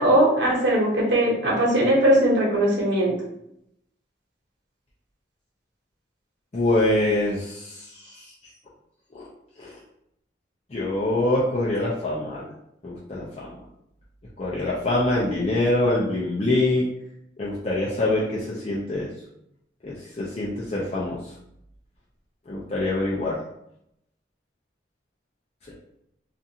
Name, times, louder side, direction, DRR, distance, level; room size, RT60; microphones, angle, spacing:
voice 1, 0.0-3.1, right 1 dB, 75° right, -4 dB, 1.0 m, -20 dB
voice 2, 6.5-8.3 9.1-9.2 9.6-9.7 10.7-12.5 12.8-13.5 14.4-16.9 17.4-19.1 19.8-21.3 22.5-23.4, left 1 dB, 35° left, -7 dB, 0.4 m, -25 dB
2.5 x 2.4 x 2.7 m, 0.78 s
head